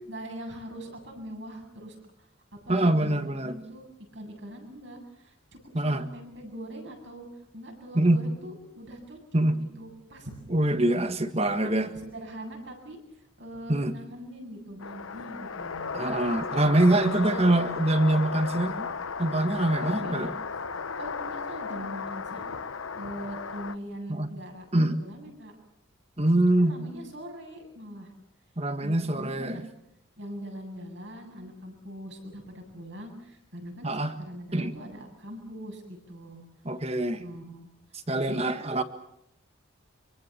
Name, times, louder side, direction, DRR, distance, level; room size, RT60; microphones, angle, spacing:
voice 1, 0.1-3.8 4.1-7.3 7.5-10.9 11.5-13.0 13.4-15.9 17.2-17.5 19.8-20.3 21.0-22.5 22.9-25.5 26.6-28.1 28.8-29.6 30.2-36.4 37.2-37.7 38.1-38.4, equal, 60° right, 2 dB, 7.9 m, -42 dB
voice 2, 2.7-3.5 5.7-6.1 7.9-8.2 9.3-9.6 10.5-11.9 13.7-13.9 15.9-18.9 19.2-20.3 24.1-24.3 24.7-25.0 26.2-26.8 28.6-29.6 33.8-34.1 34.5-34.7 36.6-37.2 38.1-38.8, right 1 dB, 30° right, 10 dB, 1.7 m, -24 dB
sound 1, 14.8-23.8, left 5 dB, 85° left, 0.9 m, -35 dB
25.5 x 24.0 x 7.5 m, 0.77 s
head